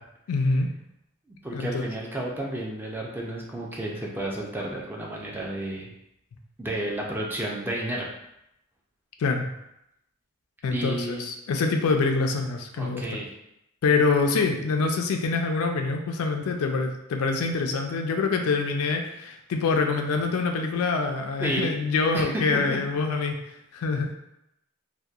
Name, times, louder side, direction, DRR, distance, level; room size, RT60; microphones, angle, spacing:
voice 1, 0.3-0.7 1.5-1.9 9.2-9.5 10.6-13.0 13.8-23.4 23.7-24.1, left 4 dB, 80° left, 4 dB, 0.4 m, -25 dB
voice 2, 1.4-5.9 6.6-8.1 10.7-11.2 12.8-13.3 21.4-21.7 22.1-22.6, right 1 dB, 10° right, -2 dB, 0.3 m, -31 dB
2.7 x 2.1 x 2.3 m, 0.83 s
head